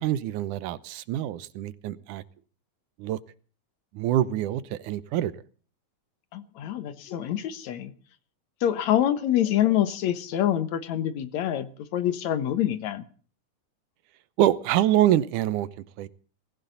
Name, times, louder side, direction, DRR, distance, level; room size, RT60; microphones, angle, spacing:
voice 1, 0.0-2.2 3.0-3.2 3.9-5.3 14.4-15.7 16.0-16.1, right 12 dB, 85° right, 16 dB, 2.4 m, -25 dB
voice 2, 6.3-7.9 8.6-13.0, left 11 dB, 70° left, 12 dB, 2.4 m, -26 dB
21.5 x 15.5 x 4.0 m, 0.41 s
omnidirectional pair, 3.5 m